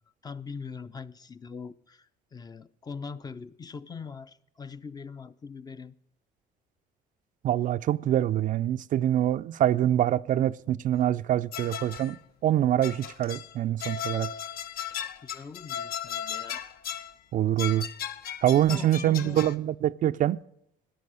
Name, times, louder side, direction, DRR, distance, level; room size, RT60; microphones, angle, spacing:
voice 1, 0.2-5.9 15.2-16.6 18.7-19.4, left 5 dB, 25° left, 0.5 m, -42 dB
voice 2, 7.4-14.3 17.3-17.9 18.4-20.4, right 12 dB, 50° right, 0.4 m, -25 dB
sound 1, 11.5-12.2 12.8-13.5 13.8-17.1 17.6-19.6, left 9 dB, 65° left, 0.7 m, -36 dB
14.0 x 10.0 x 6.2 m
cardioid pair, 110°, 17 cm